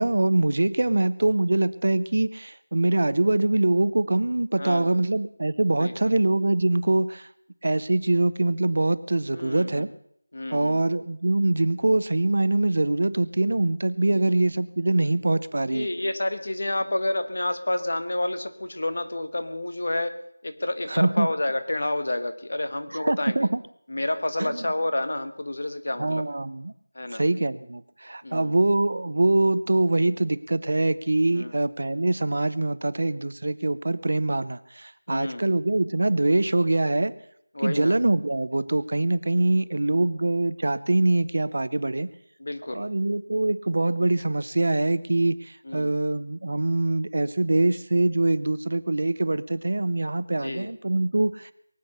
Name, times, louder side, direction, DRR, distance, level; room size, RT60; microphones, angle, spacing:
voice 1, 0.0-7.3 7.6-9.9 10.5-15.9 20.9-21.3 23.0-23.6 24.4-24.6 26.0-26.7 27.1-37.1 37.6-42.1 42.7-51.5, right 2 dB, 45° right, 16 dB, 0.6 m, -24 dB
voice 2, 4.6-4.9 5.8-6.1 9.3-9.8 10.3-10.8 15.7-20.2 20.4-23.5 23.9-26.4 26.9-27.2 28.2-28.5 31.3-31.5 35.1-35.4 37.5-38.0 42.4-42.9 45.6-45.9 50.4-50.7, left 1 dB, 45° left, 9 dB, 1.3 m, -29 dB
22.5 x 8.2 x 6.6 m, 0.72 s
figure-of-eight pair, 180°, 0 cm